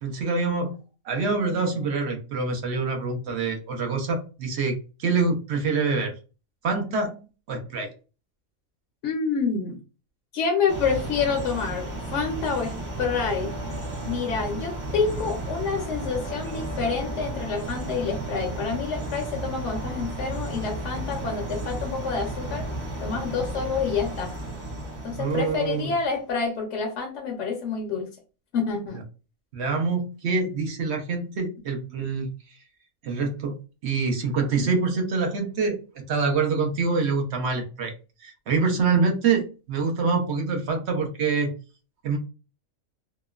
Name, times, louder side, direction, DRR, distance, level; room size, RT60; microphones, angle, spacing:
voice 1, 0.0-0.8 1.1-6.1 6.6-7.2 7.5-7.9 25.2-25.9 29.5-32.3 33.0-33.5 33.8-37.9 38.2-41.5 42.0-42.2, right 4 dB, 60° right, 3 dB, 0.9 m, -25 dB
voice 2, 9.0-9.8 10.3-12.7 13.0-13.5 14.0-22.7 23.0-24.3 25.0-28.1 28.5-29.0, left 5 dB, 65° left, 2 dB, 0.8 m, -28 dB
sound 1, 10.7-26.2, right 1 dB, 40° right, 0.4 m, -33 dB
2.9 x 2.1 x 2.3 m, 0.33 s
omnidirectional pair, 1.4 m